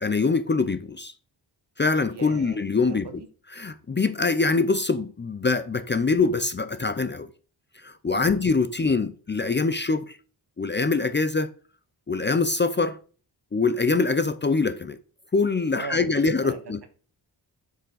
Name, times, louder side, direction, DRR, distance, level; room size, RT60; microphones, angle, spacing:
voice 1, 0.0-1.1 1.8-3.1 3.6-7.3 7.8-10.2 10.6-11.5 12.1-13.0 13.5-15.0 15.3-16.8, left 4 dB, 25° left, 0.5 m, -24 dB
voice 2, 2.1-2.6 2.9-3.3 8.2-8.4 15.6-16.9, right 5 dB, 65° right, 1.5 m, -40 dB
8.1 x 6.7 x 3.9 m
wide cardioid pair, 160°, 43 cm